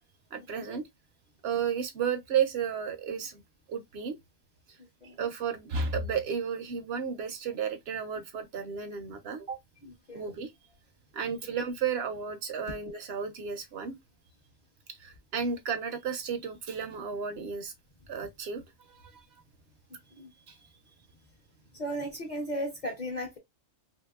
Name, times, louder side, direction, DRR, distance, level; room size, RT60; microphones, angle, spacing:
voice 1, 0.3-0.9 1.4-3.4 3.7-4.2 5.2-9.6 10.1-10.5 11.1-14.0 14.9-17.7 18.1-19.2 20.5-20.6, right 6 dB, 60° right, 0.7 m, -33 dB
voice 2, 9.8-10.2 20.1-20.3 21.7-23.4, equal, 45° left, 0.7 m, -36 dB
2.9 x 2.8 x 2.2 m
omnidirectional pair, 1.3 m